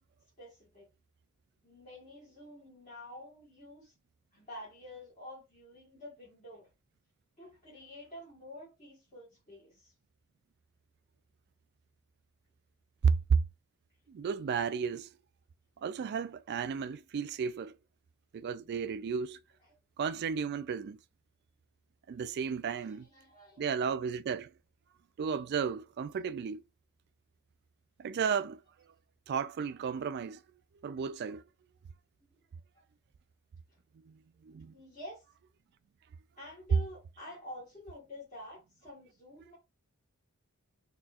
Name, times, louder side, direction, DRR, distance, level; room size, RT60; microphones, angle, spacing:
voice 1, 0.4-0.9 1.6-3.9 4.3-6.7 7.4-9.9 19.6-19.7 22.8-23.6 32.7-32.8 33.7-33.8 34.7-35.2 36.4-39.6, left 1 dB, 30° left, 1.5 m, -49 dB
voice 2, 13.0-13.4 14.1-15.1 15.8-17.7 18.3-19.4 20.0-21.0 22.1-23.1 23.6-24.5 25.2-26.6 28.0-28.6 29.3-30.4 30.8-31.4 34.1-34.7, right 6 dB, 45° right, 0.3 m, -33 dB
4.2 x 2.7 x 2.4 m
head